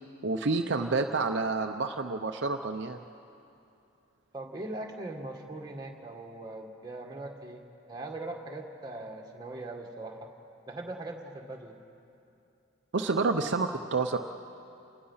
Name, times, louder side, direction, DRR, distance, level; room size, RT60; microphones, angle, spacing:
voice 1, 0.2-3.0 12.9-14.2, right 3 dB, 60° right, 4 dB, 0.7 m, -29 dB
voice 2, 4.3-10.3 10.7-11.8, right 2 dB, 20° right, 0 dB, 1.9 m, -40 dB
28.5 x 20.0 x 5.7 m, 2.7 s
head